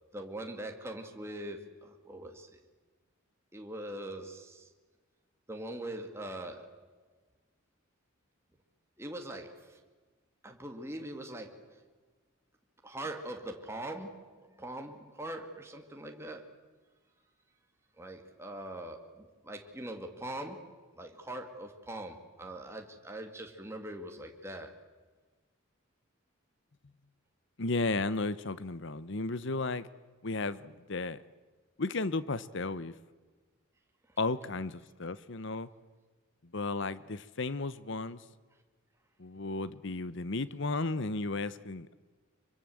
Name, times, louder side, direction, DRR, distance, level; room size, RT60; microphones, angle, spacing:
voice 1, 0.1-2.6 3.5-4.7 5.5-6.9 9.0-9.8 10.4-11.8 12.8-16.5 18.0-24.7, right 1 dB, 10° right, 3 dB, 2.1 m, -42 dB
voice 2, 27.6-29.9 30.2-31.2 31.8-32.9 34.2-35.7 36.5-38.2 39.2-42.0, left 3 dB, 60° left, 16 dB, 1.0 m, -34 dB
24.5 x 24.0 x 7.8 m, 1.3 s
head